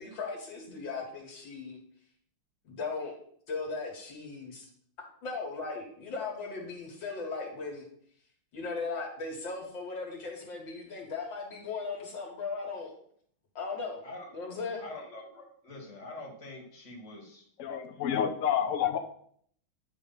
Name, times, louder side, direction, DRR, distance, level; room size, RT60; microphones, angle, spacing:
voice 1, 0.0-1.8 2.6-3.1 3.5-4.7 5.2-7.9 8.5-12.9 13.6-14.0 14.3-14.8, left 4 dB, 65° left, 2.4 m, -37 dB
voice 2, 14.8-17.5 18.1-18.2 18.5-18.6, left 2 dB, 35° left, 1.9 m, -45 dB
voice 3, 17.6-19.0, left 9 dB, 80° left, 0.7 m, -29 dB
9.6 x 3.2 x 5.5 m
omnidirectional pair, 2.3 m